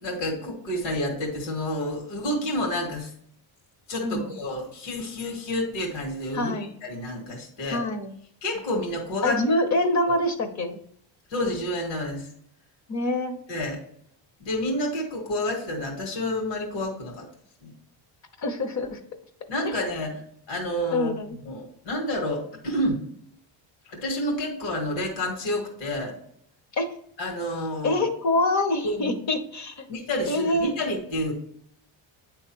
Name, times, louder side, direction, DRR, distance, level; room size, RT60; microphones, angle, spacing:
voice 1, 0.0-3.1 3.9-6.5 6.8-7.8 8.4-9.4 11.3-12.3 13.5-13.8 14.4-17.3 17.6-17.7 19.5-23.0 23.9-26.2 27.2-28.0 28.8-29.2 29.9-31.3, left 1 dB, 65° left, 0 dB, 2.0 m, -29 dB
voice 2, 4.0-4.4 6.3-6.7 7.7-8.1 9.2-10.8 12.9-13.4 18.4-19.0 19.6-19.7 20.9-21.4 26.7-26.9 27.8-29.9 30.3-30.7, left 1 dB, 35° left, 7 dB, 1.0 m, -25 dB
9.4 x 3.2 x 4.6 m, 0.67 s
cardioid pair, 150°, 48 cm